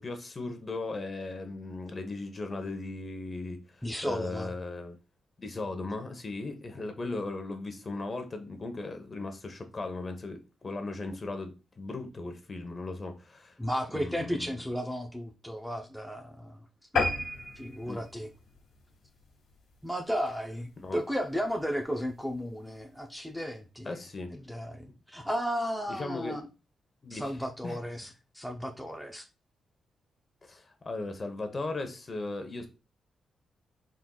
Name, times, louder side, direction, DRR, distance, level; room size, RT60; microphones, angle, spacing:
voice 1, 0.0-5.0 5.4-13.5 13.9-14.5 17.9-18.0 20.8-21.0 23.8-24.4 25.9-26.4 27.0-27.3 27.6-27.8 30.4-32.7, left 2 dB, 35° left, 1.0 m, -37 dB
voice 2, 3.8-4.5 13.6-16.6 17.6-18.3 19.8-23.9 24.3-26.4 27.1-29.3, equal, ahead, 0.6 m, -34 dB
sound 1, 17.0-19.7 20.2-20.4 20.8-20.9 21.2-21.3 21.6-21.7, left 3 dB, 85° left, 1.6 m, -32 dB
4.3 x 3.9 x 2.3 m
cardioid pair, 90°, 0 cm